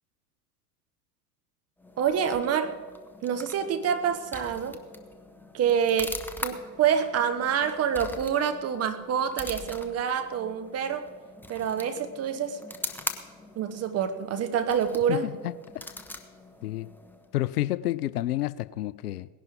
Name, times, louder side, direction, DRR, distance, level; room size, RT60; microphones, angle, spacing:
sound 1, 1.8-17.4, left 1 dB, 5° left, 1.1 m, -42 dB
voice 1, 2.0-2.7 3.2-4.8 5.5-6.1 6.4-11.1 11.5-12.6 13.6-15.3, right 8 dB, 30° right, 1.3 m, -27 dB
voice 2, 15.1-15.9 16.6-16.9 17.3-19.3, left 15 dB, 65° left, 0.6 m, -30 dB
18.5 x 11.0 x 5.3 m
figure-of-eight pair, 80°, 49 cm